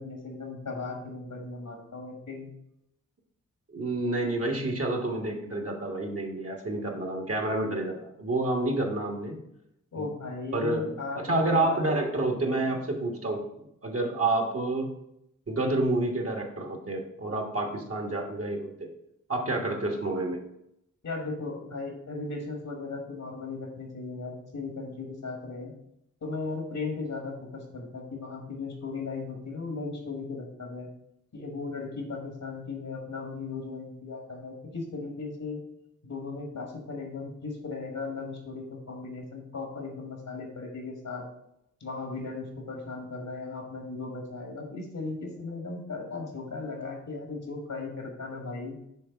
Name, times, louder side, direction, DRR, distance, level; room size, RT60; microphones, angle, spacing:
voice 1, 0.0-2.5 9.9-12.0 21.0-25.7 26.2-30.9 31.3-35.6 36.0-41.2 41.8-48.8, left 3 dB, 70° left, 1 dB, 1.7 m, -37 dB
voice 2, 3.7-9.4 10.0-10.1 10.5-13.4 13.8-14.9 15.5-18.9 19.3-20.4, right 2 dB, 45° right, 2 dB, 1.5 m, -29 dB
6.4 x 3.5 x 5.8 m, 0.80 s
cardioid pair, 50°, 32 cm